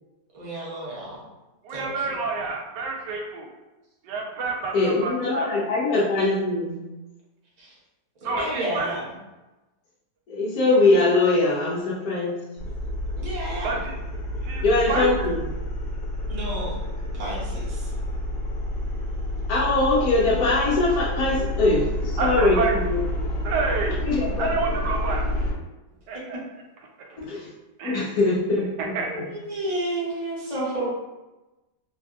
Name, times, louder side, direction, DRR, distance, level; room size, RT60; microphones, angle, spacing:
voice 1, 0.3-1.2 1.7-2.1 7.6-7.7 8.2-9.2 13.2-13.8 16.3-16.8 17.1-17.9 22.3-22.8 26.1-26.4 29.1-30.9, right 1 dB, 35° right, -5 dB, 0.7 m, -31 dB
voice 2, 1.6-3.5 4.0-5.6 8.2-8.9 13.6-13.9 14.4-15.1 22.2-22.7 23.4-24.0 24.4-25.3 26.1-26.4 27.8-28.1 28.9-29.1, right 4 dB, 85° right, 1 dB, 1.2 m, -28 dB
voice 3, 4.7-6.8 10.3-12.4 14.6-15.4 19.5-23.0 24.0-24.8 27.2-27.5 27.8-28.7 29.2-29.3, left 2 dB, 65° left, -7 dB, 1.1 m, -22 dB
sound 1, 12.6-25.5, left 1 dB, 85° left, 1.3 m, -29 dB
3.3 x 2.5 x 2.3 m, 1.1 s
omnidirectional pair, 1.8 m